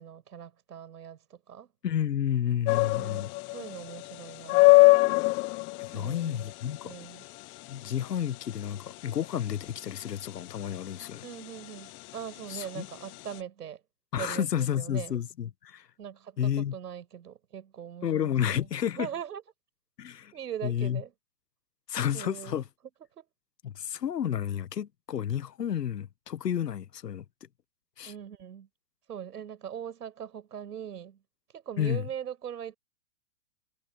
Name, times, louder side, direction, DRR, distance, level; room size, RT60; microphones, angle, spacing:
voice 1, 0.0-1.7 2.9-3.3 3.5-4.9 5.9-6.5 6.8-7.3 11.2-13.8 14.2-15.1 16.0-19.4 20.3-21.1 22.1-22.6 23.1-23.3 28.0-28.7 29.1-31.2 31.5-32.8, right 9 dB, 75° right, 6.0 m, -41 dB
voice 2, 1.8-3.3 5.8-6.9 7.7-11.2 12.5-12.9 14.1-15.9 16.4-16.7 18.0-19.1 20.0-20.3 20.6-21.0 21.9-22.6 23.6-27.2 28.0-28.1 31.8-32.0, left 9 dB, 85° left, 1.1 m, -31 dB
sound 1, 2.7-13.4, left 22 dB, 25° left, 0.8 m, -25 dB
hypercardioid pair, 120°, 47 cm